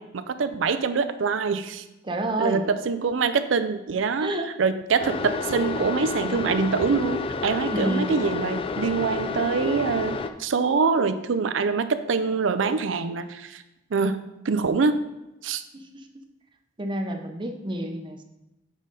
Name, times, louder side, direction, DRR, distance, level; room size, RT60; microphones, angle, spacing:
voice 1, 0.0-1.8 2.4-4.3 4.6-13.6 13.9-15.0 15.4-15.6, right 5 dB, 85° right, 11 dB, 0.5 m, -25 dB
voice 2, 2.0-2.6 4.2-4.5 7.7-8.1 15.7-16.1 16.8-18.2, right 1 dB, 25° right, 5 dB, 0.7 m, -29 dB
sound 1, 5.0-10.3, left 4 dB, 30° left, 0.4 m, -30 dB
7.3 x 5.0 x 4.1 m, 0.97 s
head